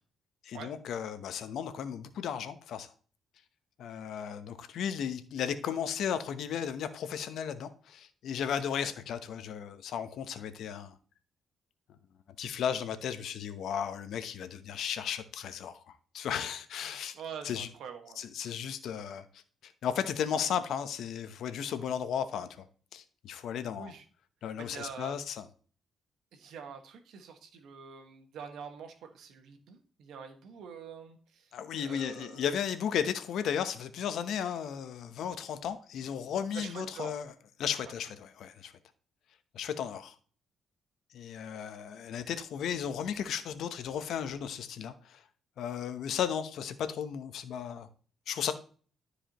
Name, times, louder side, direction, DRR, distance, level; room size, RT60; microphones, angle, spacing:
voice 1, 0.4-2.9 3.8-11.0 12.4-15.8 16.1-17.1 17.4-17.7 18.2-22.6 22.9-23.9 24.4-25.5 31.5-37.3 37.6-38.7 39.5-40.1 41.1-45.2 45.6-47.9 48.3-48.5, left 8 dB, 75° left, 0.9 m, -35 dB
voice 2, 17.1-18.2 23.8-24.0 24.6-25.1 26.3-31.5 31.8-32.4 36.5-37.1, right 6 dB, 75° right, 1.5 m, -45 dB
12.5 x 4.9 x 3.0 m
cardioid pair, 90°, 0 cm